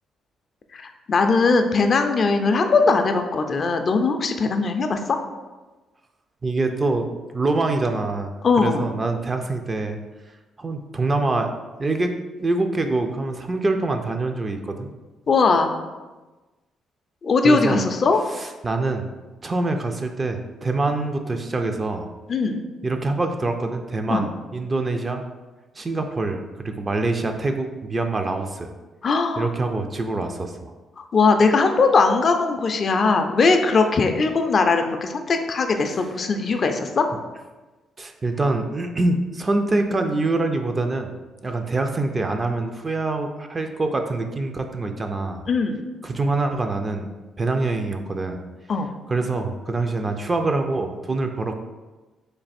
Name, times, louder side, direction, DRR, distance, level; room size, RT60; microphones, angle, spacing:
voice 1, 0.7-5.2 8.4-8.8 15.3-15.8 17.2-18.2 22.3-22.6 24.1-24.3 29.0-29.5 31.0-37.1 45.5-45.8 48.7-48.9, left 4 dB, 45° left, 6 dB, 0.4 m, -20 dB
voice 2, 6.4-7.1 7.3-8.3 8.6-10.0 10.6-11.5 11.8-12.1 12.4-14.9 17.4-17.8 18.4-19.1 19.4-22.1 22.8-25.3 25.8-28.7 29.4-30.7 35.9-36.0 38.0-41.1 41.4-45.5 46.0-47.1 47.4-48.4 49.1-51.5, right 2 dB, 30° right, 5 dB, 0.4 m, -25 dB
3.2 x 2.4 x 4.1 m, 1.2 s
cardioid pair, 90°, 0 cm